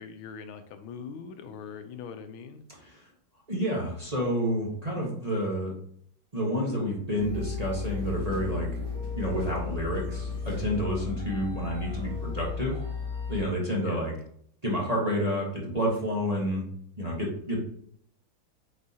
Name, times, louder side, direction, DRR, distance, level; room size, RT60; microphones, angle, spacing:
voice 1, 0.0-2.6 13.8-14.0, left 6 dB, 90° left, 8 dB, 1.5 m, -42 dB
voice 2, 3.5-5.7 6.3-8.7 9.1-12.8 13.3-14.1 14.6-16.6 17.0-17.6, equal, 25° right, -3 dB, 1.0 m, -29 dB
sound 1, 7.1-11.6, right 1 dB, 50° left, 0.8 m, -46 dB
sound 2, 7.2-13.4, left 5 dB, ahead, 2.5 m, -34 dB
7.9 x 4.5 x 2.8 m, 0.64 s
omnidirectional pair, 2.2 m